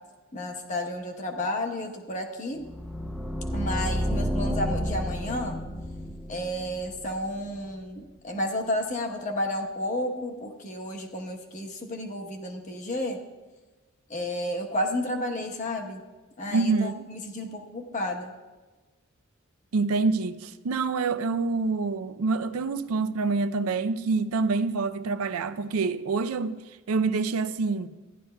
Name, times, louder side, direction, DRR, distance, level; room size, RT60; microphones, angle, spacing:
voice 1, 0.3-2.6 3.5-5.5 6.3-13.2 14.1-16.0 16.4-18.3, left 1 dB, 35° left, 1.0 m, -31 dB
sound 1, 2.6-7.6, equal, ahead, 0.4 m, -31 dB
voice 2, 16.5-17.1 19.7-26.6 26.9-27.9, right 4 dB, 90° right, 0.5 m, -26 dB
15.0 x 11.0 x 2.2 m
head